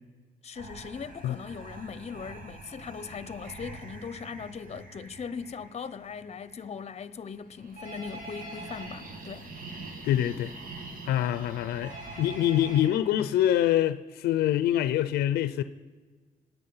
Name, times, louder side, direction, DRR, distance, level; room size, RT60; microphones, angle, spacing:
voice 1, 0.4-9.5, left 6 dB, 40° left, 0.8 m, -39 dB
sound 1, 0.5-12.8, right 3 dB, 60° right, 2.4 m, -45 dB
Telephone, 7.8-8.9 11.8-12.9, right 1 dB, 80° right, 5.8 m, -43 dB
voice 2, 10.0-10.5 11.1-15.6, left 12 dB, 85° left, 0.6 m, -25 dB
25.5 x 9.3 x 5.7 m
supercardioid pair, 65°, 16 cm